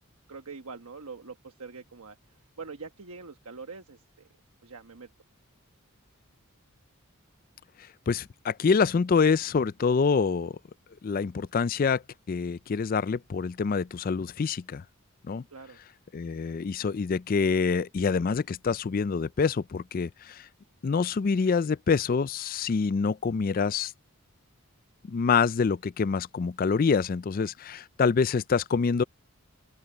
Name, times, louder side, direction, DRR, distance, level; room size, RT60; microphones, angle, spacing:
voice 1, 0.3-4.3 4.6-5.1 15.5-15.8, right 4 dB, 90° right, 1.2 m, -44 dB
voice 2, 8.1-10.6 11.0-12.0 12.3-14.8 15.3-15.4 16.1-20.5 20.8-23.9 25.0-29.0, left 5 dB, 40° left, 0.3 m, -26 dB
open air
head